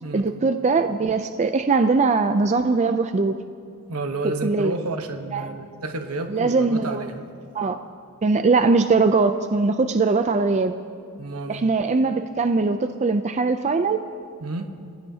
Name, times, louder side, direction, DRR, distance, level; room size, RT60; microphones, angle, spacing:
voice 1, 0.1-3.3 4.4-4.7 5.3-5.5 6.3-7.0 7.5-7.8 8.2-10.7 11.5-14.0, right 4 dB, 30° right, 8 dB, 0.4 m, -21 dB
voice 2, 3.9-7.3 11.2-11.6 14.4-14.7, right 2 dB, 80° right, 6 dB, 1.1 m, -30 dB
28.5 x 16.5 x 2.8 m, 2.5 s
head